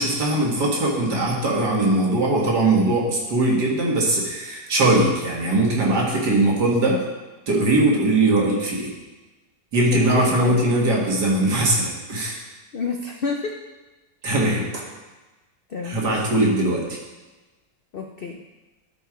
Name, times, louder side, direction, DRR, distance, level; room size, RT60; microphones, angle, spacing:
voice 1, 0.0-7.0 7.5-8.9 9.7-12.4 14.2-14.8 15.8-16.9, right 2 dB, 75° right, -2 dB, 2.4 m, -20 dB
voice 2, 9.9-10.8 12.7-13.6 14.4-14.6 15.7-16.0 17.9-18.4, left 4 dB, 70° left, 2 dB, 0.5 m, -30 dB
12.5 x 4.5 x 5.0 m, 1.2 s
omnidirectional pair, 1.8 m